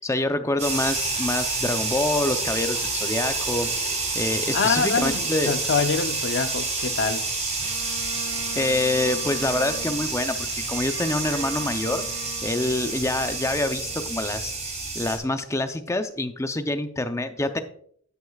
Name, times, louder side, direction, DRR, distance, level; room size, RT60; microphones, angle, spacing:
voice 1, 0.0-5.5 8.6-12.0 12.4-14.5 14.9-17.6, left 2 dB, 15° left, 0.6 m, -26 dB
sound 1, 0.6-15.2, right 3 dB, 35° right, 3.9 m, -29 dB
voice 2, 4.5-7.3, left 5 dB, 60° left, 0.6 m, -25 dB
Bowed string instrument, 7.6-14.9, right 3 dB, 65° right, 2.1 m, -41 dB
11.0 x 9.6 x 2.4 m
head